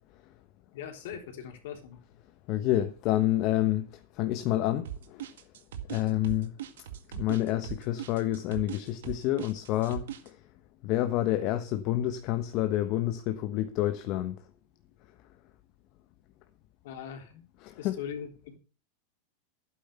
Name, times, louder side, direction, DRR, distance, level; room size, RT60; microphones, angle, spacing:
voice 1, 0.7-2.0 16.8-17.3 17.8-18.6, left 8 dB, 65° left, 3.6 m, -40 dB
voice 2, 2.5-3.9 4.1-5.2 5.9-6.5 7.1-10.4 10.8-14.4 17.6-18.0, left 14 dB, 50° left, 1.2 m, -28 dB
sound 1, 4.9-10.3, right 11 dB, 75° right, 1.9 m, -39 dB
12.0 x 9.5 x 6.8 m
hypercardioid pair, 105°, 0 cm